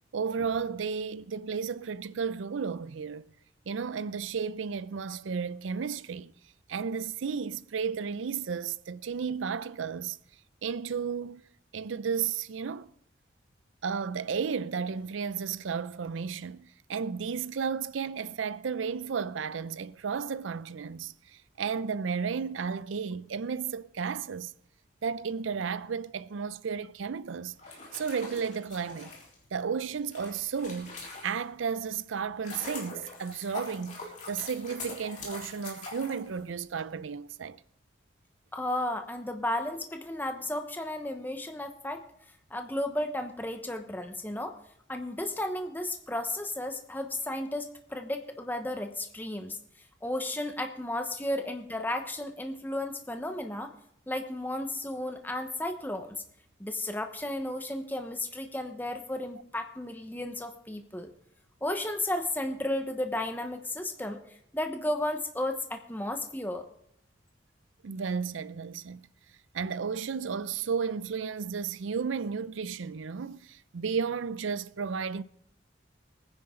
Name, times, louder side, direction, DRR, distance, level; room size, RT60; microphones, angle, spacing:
voice 1, 0.1-3.3 3.7-6.3 6.7-10.2 10.6-11.4 11.7-12.9 13.8-24.5 25.0-27.6 27.9-29.1 29.5-31.0 31.2-37.6 67.8-69.1 69.5-75.2, right 6 dB, 90° right, 0.5 m, -33 dB
sound 1, 27.5-31.6 32.1-36.8, left 3 dB, 40° left, 3.7 m, -43 dB
voice 2, 38.5-42.0 42.5-44.6 44.9-49.6 50.0-53.7 54.1-56.2 56.6-61.1 61.6-66.6, left 1 dB, 10° left, 1.0 m, -33 dB
21.0 x 9.8 x 3.8 m
head